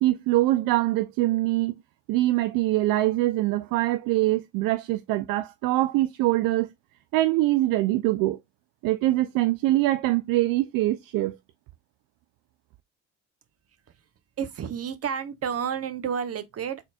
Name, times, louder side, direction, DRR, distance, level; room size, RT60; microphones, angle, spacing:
voice 1, 0.0-1.8 2.1-6.7 7.1-8.4 8.8-11.4, right 17 dB, 60° right, 0.5 m, -23 dB
voice 2, 14.4-16.8, right 7 dB, 40° right, 1.0 m, -30 dB
4.0 x 3.9 x 2.4 m
hypercardioid pair, 65°, 39 cm